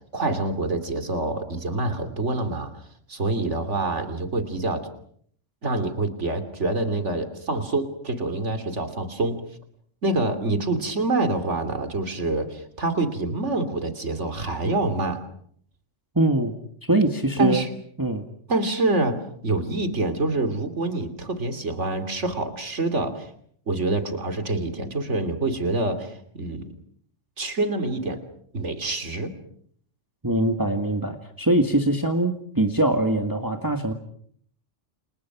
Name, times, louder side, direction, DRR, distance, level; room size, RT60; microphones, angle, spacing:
voice 1, 0.1-2.7 3.1-4.9 5.6-9.4 10.0-15.2 17.4-17.7 18.5-23.3 23.7-26.7 27.4-28.2 28.5-29.3, right 2 dB, 70° right, 9 dB, 3.3 m, -26 dB
voice 2, 16.2-16.5 16.8-17.6 18.0-18.2 30.2-33.9, right 1 dB, 15° right, 5 dB, 1.9 m, -22 dB
29.5 x 28.0 x 6.1 m, 0.64 s
omnidirectional pair, 1.3 m